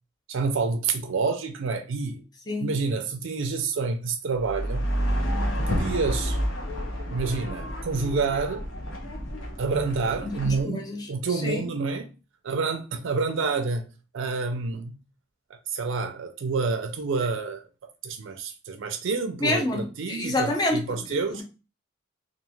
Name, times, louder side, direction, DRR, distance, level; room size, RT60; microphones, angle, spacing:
voice 1, 0.3-2.2 2.6-4.9 5.5-6.4 7.1-8.7 9.6-12.1 12.4-13.8 14.1-15.0 15.7-21.4, right 4 dB, 65° right, 0.4 m, -28 dB
sound 1, 4.4-10.6, equal, 65° left, 0.8 m, -29 dB
voice 2, 10.2-11.1 11.4-11.6 19.4-21.0 21.3-21.4, left 2 dB, 20° left, 0.6 m, -28 dB
3.0 x 2.4 x 2.3 m
head